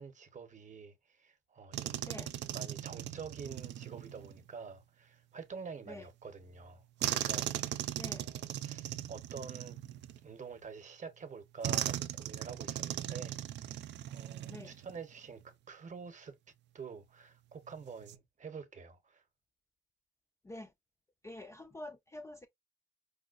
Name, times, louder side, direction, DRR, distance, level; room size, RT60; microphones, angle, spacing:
voice 1, 0.0-2.1 2.5-7.9 8.1-9.8 10.2-16.4 16.7-19.2, right 5 dB, 40° right, 0.9 m, -48 dB
sound 1, 1.7-4.4 7.0-10.5 11.6-15.0 15.3-15.5 17.8-18.2, right 12 dB, 65° right, 0.4 m, -38 dB
voice 2, 21.2-22.5, left 1 dB, 15° left, 0.4 m, -46 dB
4.8 x 2.1 x 2.4 m
cardioid pair, 90°, 20 cm